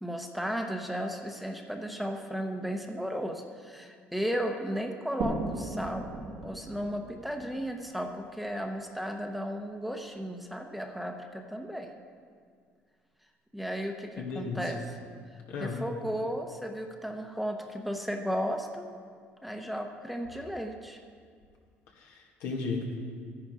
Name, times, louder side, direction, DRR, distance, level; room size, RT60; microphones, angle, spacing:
voice 1, 0.0-6.1 6.4-11.9 13.5-15.0 15.6-18.9 19.4-21.0, equal, ahead, 3 dB, 0.9 m, -35 dB
sound 1, 5.2-8.7, right 2 dB, 75° right, 1.5 m, -37 dB
voice 2, 14.2-14.6 15.5-15.8 22.0-22.9, left 4 dB, 85° left, -1 dB, 2.1 m, -34 dB
12.5 x 10.0 x 4.9 m, 2.1 s
cardioid pair, 105°, 5 cm